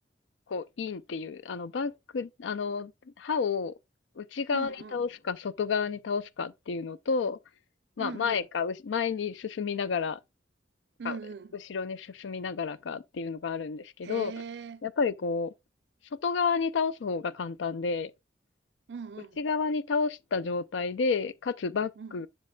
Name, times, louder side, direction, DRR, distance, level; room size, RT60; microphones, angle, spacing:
voice 1, 0.5-2.9 3.2-3.7 4.2-7.4 8.0-10.2 11.1-11.2 11.7-14.3 14.8-15.5 16.2-18.1 19.4-22.3, left 5 dB, 90° left, 0.4 m, -30 dB
voice 2, 4.5-5.0 8.0-8.5 11.0-11.6 14.0-14.9 18.9-19.4 22.0-22.2, right 5 dB, 65° right, 0.4 m, -40 dB
7.5 x 6.4 x 2.3 m
head